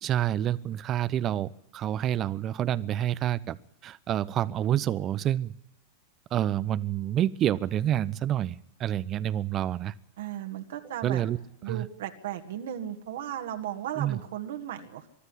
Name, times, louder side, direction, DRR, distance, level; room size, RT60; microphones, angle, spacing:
voice 1, 0.0-3.6 3.8-5.5 6.3-9.9 11.0-11.4 11.7-11.9 14.0-14.2, right 11 dB, 35° right, 18 dB, 0.9 m, -28 dB
voice 2, 10.2-11.2 11.6-15.1, right 11 dB, 65° right, 5 dB, 1.9 m, -36 dB
24.0 x 13.0 x 10.0 m, 0.81 s
hypercardioid pair, 95°, 0 cm